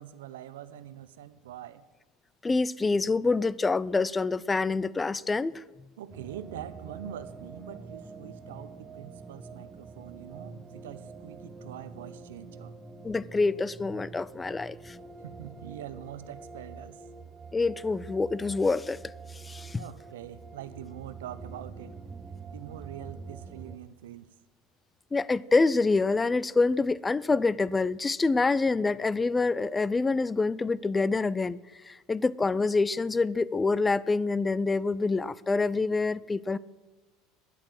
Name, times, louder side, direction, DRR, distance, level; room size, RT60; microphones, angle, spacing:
voice 1, 0.0-1.8 6.0-12.8 15.2-17.0 19.8-22.0 22.5-24.3, right 11 dB, 85° right, 0.7 m, -44 dB
voice 2, 2.4-5.6 13.0-15.0 17.5-19.0 19.3-19.8 25.1-31.6 31.8-36.6, left 3 dB, 20° left, 0.4 m, -26 dB
sound 1, 6.1-23.8, right 4 dB, 20° right, 0.9 m, -46 dB
10.0 x 8.3 x 7.9 m
supercardioid pair, 95°, 0 cm